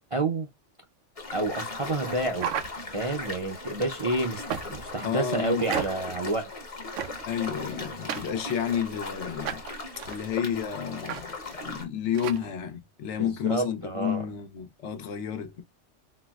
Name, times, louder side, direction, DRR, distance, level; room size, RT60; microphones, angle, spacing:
voice 1, 0.1-0.5 1.3-2.6 2.9-6.5 13.2-14.2, right 2 dB, 45° right, 0.4 m, -29 dB
sound 1, 1.2-11.9, left 3 dB, 35° left, 0.8 m, -38 dB
sound 2, 2.4-3.2 4.5-5.0 5.7-6.2 7.0-7.4 8.1-8.9 9.5-10.2 11.1-11.2 11.5-11.6 12.1-12.5, right 9 dB, 85° right, 0.9 m, -34 dB
voice 2, 5.0-5.6 7.3-9.6 10.1-11.3 11.6-15.6, left 8 dB, 75° left, 1.0 m, -31 dB
4.0 x 2.0 x 2.2 m
omnidirectional pair, 1.2 m